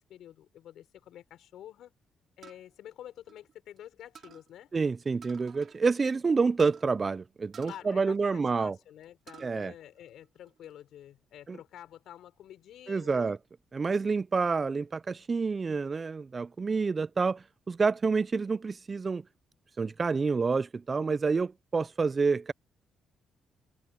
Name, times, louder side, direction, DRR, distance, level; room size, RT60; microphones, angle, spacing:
voice 1, 0.0-1.9 2.4-4.7 7.6-13.3, left 11 dB, 75° left, 5.4 m, -49 dB
sound 1, 2.4-3.8 4.1-4.5 5.2-5.8 6.1-6.2 6.6-6.9 7.5-8.7 9.0-9.5 10.0-10.7, right 7 dB, 55° right, 5.5 m, -53 dB
voice 2, 4.7-8.8 9.4-9.7 11.5-11.6 12.9-13.4 13.7-19.2 19.8-22.5, right 4 dB, 35° right, 0.3 m, -28 dB
cardioid pair, 90°, 0 cm